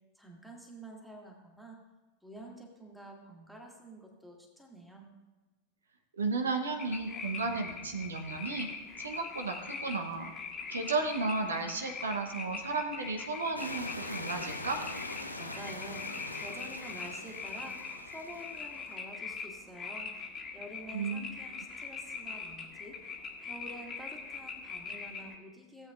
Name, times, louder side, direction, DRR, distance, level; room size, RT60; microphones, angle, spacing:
voice 1, 0.1-1.8 2.2-5.1 15.4-25.9, right 1 dB, ahead, 0 dB, 1.9 m, -49 dB
voice 2, 6.2-8.7 9.0-10.3 10.7-14.8 20.9-21.3, right 3 dB, 70° right, 5 dB, 0.9 m, -34 dB
sound 1, 6.8-25.3, left 4 dB, 25° left, 1.5 m, -42 dB
sound 2, 13.6-18.9, left 1 dB, 85° left, 0.8 m, -43 dB
16.5 x 8.2 x 2.4 m, 1.2 s
figure-of-eight pair, 90°, 0 cm